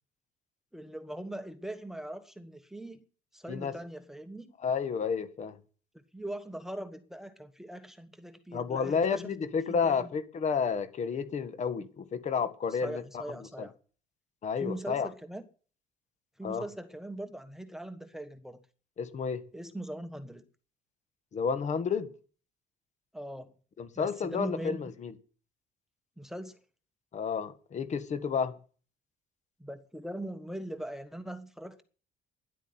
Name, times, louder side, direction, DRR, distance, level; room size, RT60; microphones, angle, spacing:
voice 1, 0.7-3.0 3.3-4.5 5.9-9.3 9.7-10.1 12.8-13.7 14.6-15.4 16.4-18.6 19.5-20.5 23.1-23.5 24.0-24.9 26.2-26.6 29.6-31.8, right 1 dB, ahead, 1.3 m, -41 dB
voice 2, 4.6-5.6 8.5-13.2 13.6-13.7 14.4-15.1 16.4-16.6 19.0-19.4 21.3-22.1 23.8-25.1 27.1-28.6, left 6 dB, 45° left, 1.6 m, -31 dB
11.0 x 8.4 x 9.7 m
cardioid pair, 110°, 17 cm